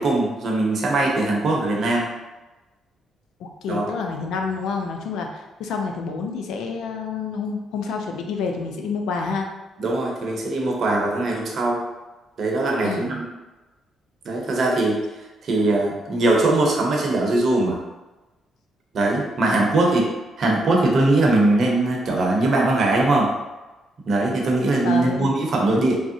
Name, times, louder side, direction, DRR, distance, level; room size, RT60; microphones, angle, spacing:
voice 1, 0.0-2.1 3.7-3.9 9.8-11.8 12.4-13.3 14.2-15.0 15.4-17.8 18.9-20.0 20.4-23.3 24.1-25.9, right 2 dB, 55° right, -1 dB, 0.7 m, -21 dB
voice 2, 3.4-9.5 12.8-13.2 19.5-20.0 24.8-25.3, left 5 dB, 85° left, 3 dB, 0.4 m, -28 dB
3.5 x 2.1 x 2.6 m, 1.1 s
cardioid pair, 90°, 0 cm